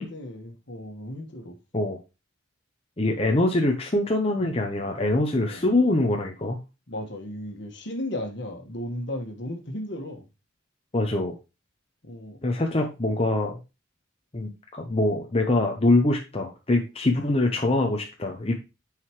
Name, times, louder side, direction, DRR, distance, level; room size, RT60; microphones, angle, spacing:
voice 1, 0.0-1.6 5.4-5.6 6.9-10.3 12.0-12.4 17.1-17.3, left 1 dB, 60° left, 1.6 m, -35 dB
voice 2, 3.0-6.6 10.9-11.3 12.4-13.6 14.3-18.5, left 2 dB, 30° left, 0.8 m, -24 dB
9.1 x 4.9 x 3.1 m
head